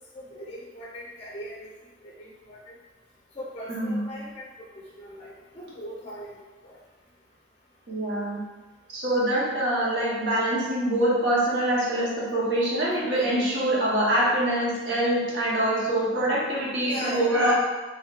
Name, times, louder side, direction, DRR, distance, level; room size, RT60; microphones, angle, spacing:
voice 1, 0.1-1.7 2.0-2.6 3.3-6.4 6.6-6.8 16.9-17.3, equal, 35° left, -4 dB, 0.4 m, -39 dB
voice 2, 3.7-4.0 7.9-8.4 8.9-17.5, right 1 dB, 70° right, -6 dB, 0.9 m, -24 dB
3.6 x 3.0 x 2.3 m, 1.2 s
head